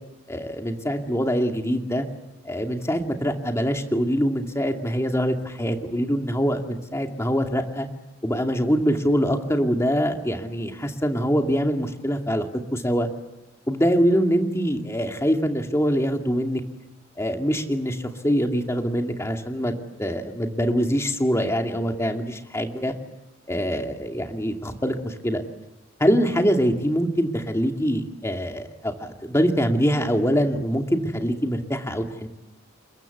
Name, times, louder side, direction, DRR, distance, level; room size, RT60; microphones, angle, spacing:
voice 1, 0.3-2.0 2.4-7.9 8.2-12.5 12.7-13.1 13.7-16.6 17.2-19.7 20.0-23.0 23.5-25.4 26.0-32.3, equal, 15° left, 4 dB, 2.5 m, -24 dB
29.0 x 22.0 x 8.1 m, 0.95 s
head